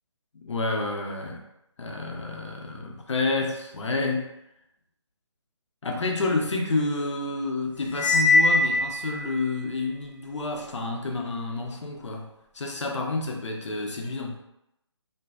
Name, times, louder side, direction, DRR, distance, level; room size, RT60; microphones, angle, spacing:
voice 1, 0.4-1.4 1.8-4.3 5.8-12.3 12.5-14.4, left 3 dB, 75° left, 2 dB, 0.5 m, -29 dB
Cymbal, 7.9-9.4, left 2 dB, 20° left, 0.5 m, -21 dB
2.5 x 2.3 x 2.2 m, 0.83 s
figure-of-eight pair, 155°, 15 cm